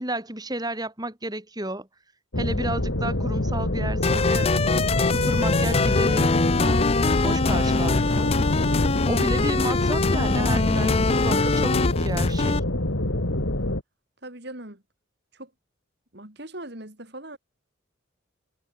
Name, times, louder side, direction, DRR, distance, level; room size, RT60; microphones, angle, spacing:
voice 1, 0.0-1.9 2.4-4.5 5.1-6.8 7.2-8.3 9.1-12.6, right 1 dB, 20° right, 7.0 m, -31 dB
sound 1, 2.3-13.8, left 1 dB, 80° left, 3.0 m, -26 dB
sound 2, 4.0-12.6, left 4 dB, 30° left, 0.4 m, -23 dB
voice 2, 9.2-9.6 14.2-14.8 15.3-15.5 16.1-17.4, right 1 dB, 55° right, 3.8 m, -40 dB
head